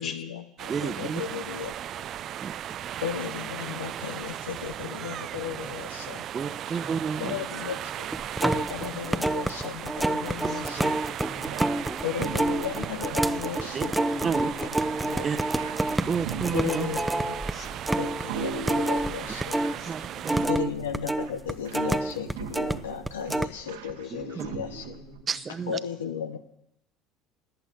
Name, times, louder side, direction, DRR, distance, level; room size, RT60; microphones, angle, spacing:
voice 1, 0.0-1.7 3.0-6.3 7.2-8.1 8.4-10.9 12.0-13.9 15.0-15.2 16.5-17.0 17.3-17.4 18.0-19.6 20.4-24.8 25.7-26.4, left 8 dB, 85° left, 8 dB, 0.8 m, -35 dB
sound 1, 0.6-20.5, right 11 dB, 50° right, 0.5 m, -37 dB
voice 2, 0.7-1.2 2.4-2.5 6.3-7.4 10.4-10.9 13.7-13.8 14.2-14.5 15.2-15.4 16.1-16.9 19.9-20.5 24.1-24.5 25.3-25.8, right 6 dB, 35° right, 11 dB, 0.9 m, -31 dB
voice 3, 5.5-6.0 6.7-6.9 7.3-7.7 8.1-8.2 9.0-9.7 10.4-12.0 12.3-13.3 14.1-15.3 16.0-16.1 16.4-16.8 17.5-18.3 18.7-20.2 21.1-22.2 22.9-23.0 24.0-25.2, left 5 dB, 55° left, 3 dB, 3.7 m, -47 dB
sound 2, 8.1-19.8 20.0-22.8 23.1-23.5, right 1 dB, 5° right, 0.8 m, -28 dB
sound 3, 11.4-25.2, right 6 dB, 80° right, 1.5 m, -41 dB
18.0 x 8.3 x 8.8 m, 0.84 s
hypercardioid pair, 75°, 0 cm